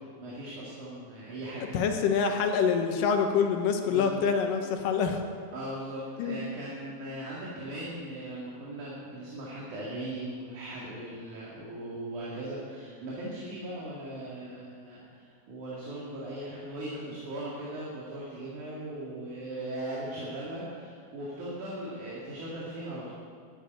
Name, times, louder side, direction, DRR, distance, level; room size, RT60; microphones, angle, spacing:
voice 1, 0.2-1.7 3.9-4.1 5.5-23.1, right 1 dB, 60° right, -6 dB, 3.6 m, -39 dB
voice 2, 1.7-5.2 6.2-6.4, left 6 dB, 75° left, 5 dB, 2.6 m, -26 dB
12.5 x 9.1 x 9.1 m, 2.1 s
omnidirectional pair, 4.1 m